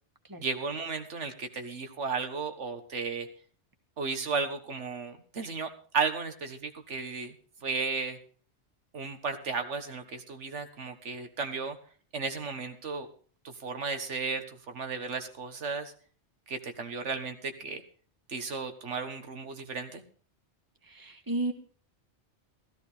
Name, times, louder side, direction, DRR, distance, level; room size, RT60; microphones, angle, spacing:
voice 1, 0.4-3.3 4.0-7.3 7.6-8.2 8.9-11.8 12.1-13.1 13.4-15.9 16.5-17.8 18.3-20.0, right 5 dB, 80° right, 7 dB, 1.7 m, -34 dB
voice 2, 20.8-21.5, right 2 dB, 20° right, 5 dB, 1.6 m, -33 dB
15.5 x 14.0 x 3.4 m, 0.42 s
omnidirectional pair, 1.2 m